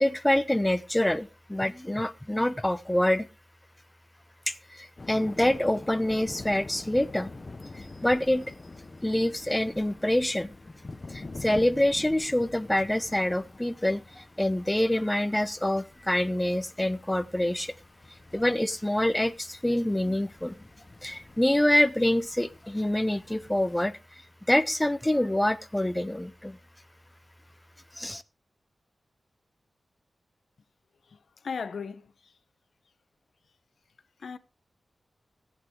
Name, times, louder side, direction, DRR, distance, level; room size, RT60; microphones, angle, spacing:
voice 1, 0.0-3.3 4.5-7.3 7.7-8.5 9.0-10.5 11.1-17.7 18.3-20.6 21.0-23.9 24.5-26.6 28.0-28.2, left 1 dB, 10° left, 0.4 m, -26 dB
sound 1, 5.0-23.8, left 3 dB, 35° left, 0.8 m, -46 dB
voice 2, 31.0-32.3 34.2-34.4, left 5 dB, 80° left, 0.7 m, -37 dB
15.0 x 8.0 x 3.6 m
wide cardioid pair, 135°, 0 cm